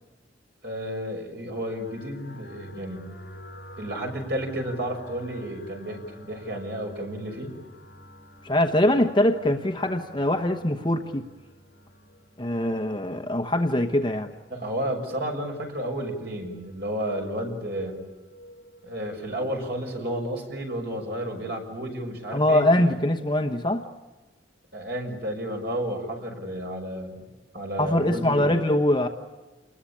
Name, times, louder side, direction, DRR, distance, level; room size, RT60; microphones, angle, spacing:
voice 1, 0.6-3.1 3.8-7.5 14.5-18.0 18.8-22.7 24.7-27.2 27.5-28.6, right 1 dB, 55° right, 2 dB, 6.4 m, -32 dB
sound 1, 1.5-21.2, equal, 55° left, 4.7 m, -50 dB
voice 2, 8.4-11.2 12.4-14.3 22.3-23.8 27.8-29.1, left 1 dB, 25° left, 5 dB, 1.1 m, -23 dB
28.5 x 21.0 x 8.7 m, 1.2 s
head